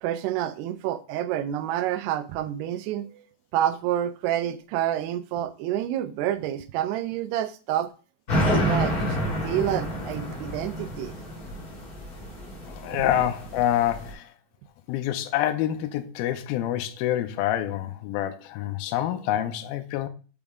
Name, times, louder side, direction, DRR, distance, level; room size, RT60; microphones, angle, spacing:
voice 1, 0.0-3.2 3.5-7.9 8.6-11.1 13.1-13.2, right 11 dB, 80° right, 2.6 m, -28 dB
sound 1, 8.3-14.1, equal, 25° left, 2.5 m, -29 dB
voice 2, 12.7-14.3 14.9-20.1, left 12 dB, 85° left, 2.3 m, -27 dB
7.1 x 5.2 x 3.5 m
omnidirectional pair, 4.8 m